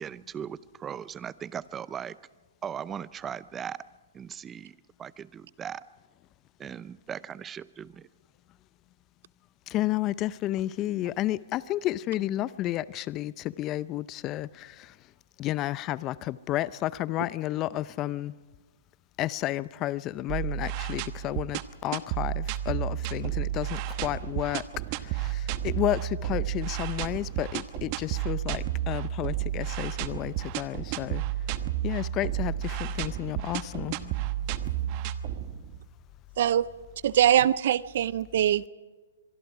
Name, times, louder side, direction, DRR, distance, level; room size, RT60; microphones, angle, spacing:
voice 1, 0.0-2.2 2.6-3.8 4.1-5.8 6.6-8.1, right 8 dB, 20° right, 18 dB, 0.6 m, -38 dB
voice 2, 9.7-15.0 15.4-18.3 19.2-24.6 24.9-31.2 31.8-34.3, left 15 dB, 30° left, 19 dB, 0.5 m, -31 dB
sound 1, 20.3-35.9, right 12 dB, 40° right, 1.0 m, -32 dB
voice 3, 36.4-36.7 37.0-38.7, right 11 dB, 55° right, 19 dB, 0.6 m, -22 dB
24.5 x 23.5 x 4.9 m, 1.3 s
hypercardioid pair, 125°, 0 cm